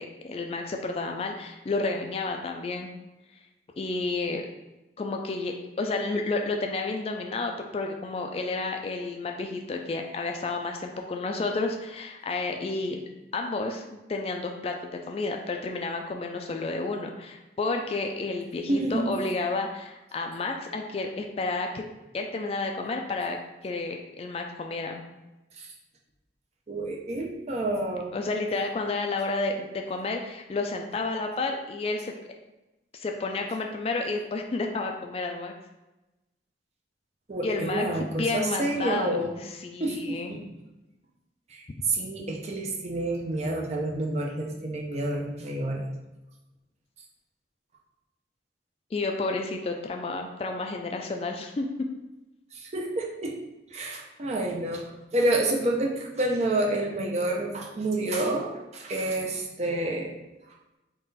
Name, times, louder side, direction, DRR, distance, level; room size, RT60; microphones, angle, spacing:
voice 1, 0.0-2.9 3.8-4.5 5.0-13.0 13.3-21.9 22.1-23.4 23.6-25.0 28.1-32.1 32.9-35.5 37.4-39.2 39.6-40.3 48.9-51.7, left 3 dB, 35° left, 3 dB, 0.3 m, -31 dB
voice 2, 18.7-19.1 25.6-25.7 26.7-28.1 37.3-39.4 39.8-40.4 41.5-45.9 52.5-53.3 53.7-54.9 55.1-60.1, right 1 dB, 35° right, 0 dB, 0.5 m, -29 dB
3.7 x 2.4 x 4.0 m, 1.0 s
head